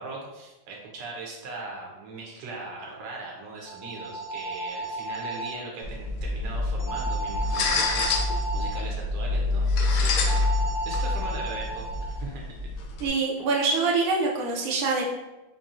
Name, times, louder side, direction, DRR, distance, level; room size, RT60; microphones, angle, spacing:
voice 1, 0.0-11.8 12.2-12.6, right 3 dB, 65° right, -2 dB, 1.4 m, -39 dB
sound 1, 3.6-5.5 6.8-8.8 10.2-12.2, right 2 dB, 15° left, 0.8 m, -34 dB
sound 2, 5.8-13.1, left 3 dB, 75° left, 1.3 m, -27 dB
voice 2, 13.0-15.0, right 3 dB, 85° right, -1 dB, 1.5 m, -25 dB
4.6 x 2.9 x 2.5 m, 1.0 s
omnidirectional pair, 2.4 m